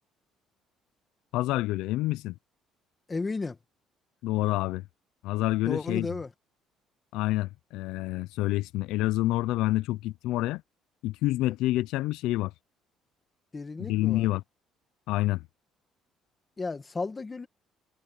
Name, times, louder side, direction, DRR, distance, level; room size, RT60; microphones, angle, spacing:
voice 1, 1.3-2.3 4.2-4.8 5.2-6.1 7.1-10.6 11.0-12.5 13.9-14.4 15.1-15.4, left 17 dB, 90° left, 0.4 m, -27 dB
voice 2, 3.1-3.6 5.6-6.3 13.5-14.3 16.6-17.5, left 3 dB, 15° left, 1.6 m, -33 dB
cardioid pair, 165°, 0 cm